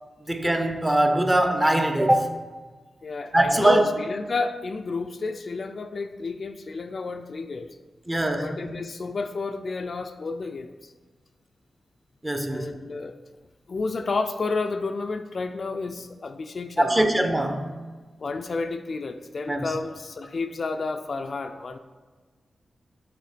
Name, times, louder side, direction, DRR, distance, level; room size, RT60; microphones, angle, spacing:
voice 1, 0.3-2.4 3.3-3.8 8.1-8.5 12.2-12.7 16.8-17.7 19.5-19.7, right 1 dB, 15° right, 6 dB, 0.6 m, -22 dB
voice 2, 3.0-7.7 8.4-10.9 12.5-13.2 13.7-17.1 18.2-21.8, left 3 dB, 50° left, 7 dB, 0.3 m, -31 dB
6.6 x 4.2 x 4.9 m, 1.4 s
wide cardioid pair, 130°, 0 cm